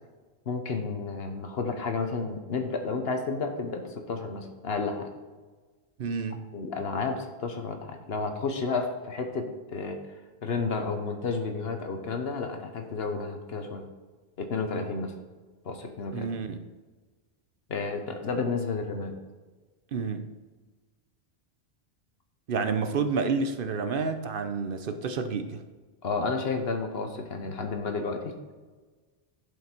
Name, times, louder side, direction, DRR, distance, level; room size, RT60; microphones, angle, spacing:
voice 1, 0.5-5.1 6.5-10.0 10.4-13.8 14.4-15.1 15.6-16.3 17.7-19.1 26.0-28.3, left 4 dB, 70° left, 5 dB, 1.1 m, -31 dB
voice 2, 6.0-6.4 16.1-16.6 19.9-20.4 22.5-25.6, right 5 dB, 60° right, 8 dB, 0.8 m, -29 dB
11.0 x 5.1 x 4.4 m, 1.3 s
omnidirectional pair, 1.1 m